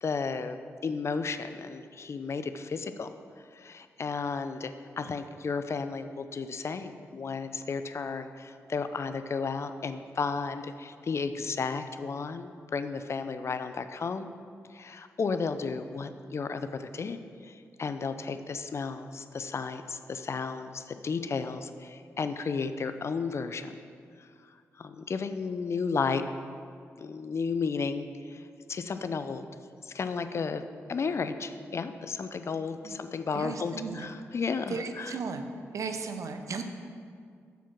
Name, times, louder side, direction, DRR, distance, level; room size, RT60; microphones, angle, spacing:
voice 1, 0.0-0.6 0.8-3.1 3.5-14.3 14.7-17.2 17.4-23.8 24.8-26.2 27.0-28.4 28.7-29.5 29.8-30.6 30.9-35.2, left 5 dB, 50° left, 10 dB, 0.4 m, -33 dB
voice 2, 33.3-34.1 34.7-35.4 35.7-36.6, right 5 dB, 65° right, 6 dB, 0.6 m, -35 dB
7.1 x 4.5 x 5.8 m, 2.2 s
supercardioid pair, 50°, 6 cm